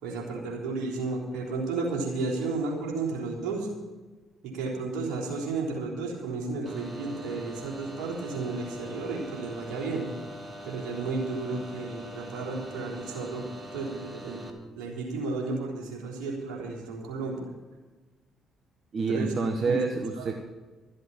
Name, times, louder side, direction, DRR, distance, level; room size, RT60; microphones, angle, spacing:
voice 1, 0.0-3.7 4.4-10.1 10.6-13.4 13.7-17.4 19.1-19.3 19.7-19.8 20.2-20.3, right 3 dB, 70° right, -2 dB, 3.6 m, -33 dB
sound 1, 6.7-14.5, equal, 30° right, 2.3 m, -43 dB
voice 2, 18.9-20.3, right 4 dB, 55° right, 5 dB, 1.1 m, -28 dB
13.5 x 7.9 x 8.8 m, 1.2 s
hypercardioid pair, 45°, 0 cm